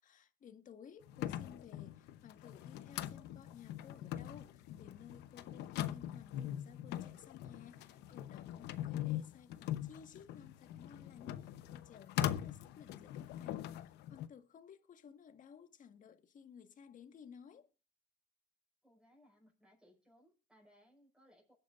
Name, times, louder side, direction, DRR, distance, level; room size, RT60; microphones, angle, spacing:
voice 1, 0.0-17.7, left 7 dB, 50° left, 1.6 m, -57 dB
sound 1, 1.1-14.3, left 12 dB, 85° left, 0.9 m, -42 dB
voice 2, 18.8-21.5, equal, 5° right, 5.7 m, -66 dB
23.0 x 9.2 x 2.5 m
cardioid pair, 110°, 17 cm